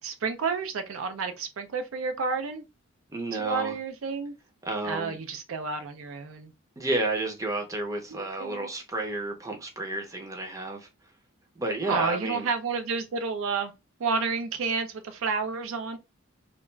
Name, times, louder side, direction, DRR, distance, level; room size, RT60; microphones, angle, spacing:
voice 1, 0.0-2.6 3.4-4.3 4.8-6.5 8.1-8.7 11.9-13.7 14.0-16.0, right 4 dB, 80° right, 0.4 m, -30 dB
voice 2, 3.1-3.8 4.6-5.2 6.8-10.9 11.6-12.5, right 2 dB, 15° right, 0.5 m, -31 dB
2.3 x 2.2 x 3.0 m
head